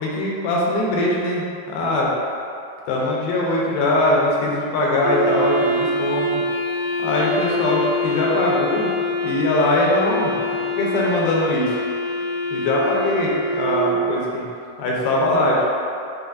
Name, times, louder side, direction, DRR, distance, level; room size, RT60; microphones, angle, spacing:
voice 1, 0.0-2.1 2.9-6.3 7.0-8.9 9.2-10.3 10.7-11.7 12.5-13.3 13.6-14.5 14.8-15.7, left 1 dB, 80° left, -4 dB, 2.4 m, -21 dB
Wind instrument woodwind instrument, 5.0-14.3, left 1 dB, 85° right, 2.4 m, -24 dB
6.2 x 2.6 x 2.4 m, 2.5 s
omnidirectional pair, 4.4 m